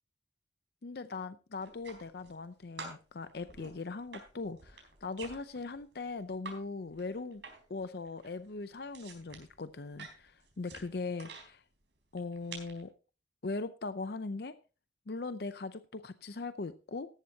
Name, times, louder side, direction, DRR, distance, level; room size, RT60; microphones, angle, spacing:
voice 1, 0.8-7.4 7.7-11.6 12.1-12.9 13.4-14.5 15.1-17.2, left 3 dB, 60° left, 12 dB, 0.6 m, -40 dB
sound 1, 1.6-2.5 2.8-6.6 6.9-7.8 8.0-11.5 12.1-12.8, right 4 dB, 90° right, 4.2 m, -49 dB
14.0 x 11.5 x 2.8 m, 0.33 s
head